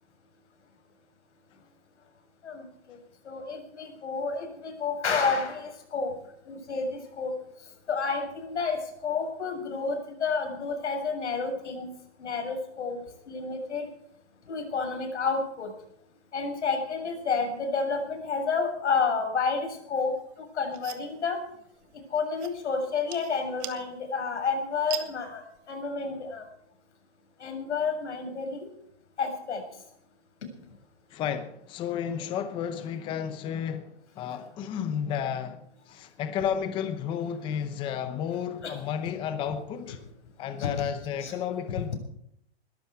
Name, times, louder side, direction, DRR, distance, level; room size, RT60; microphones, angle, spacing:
voice 1, 2.4-3.0 3.2-6.1 6.5-7.3 7.9-11.9 12.2-13.0 13.3-13.9 14.5-15.7 16.3-21.4 22.1-26.4 27.4-28.7 29.2-29.6 38.6-38.7 39.9-40.0 40.6-40.7 41.2-41.3, left 5 dB, 85° left, 7.2 m, -30 dB
sound 1, 20.1-25.8, right 15 dB, 25° right, 1.3 m, -44 dB
voice 2, 31.1-40.0 40.4-41.9, left 8 dB, 15° left, 0.8 m, -32 dB
21.5 x 13.0 x 4.7 m
hypercardioid pair, 160°, 34 cm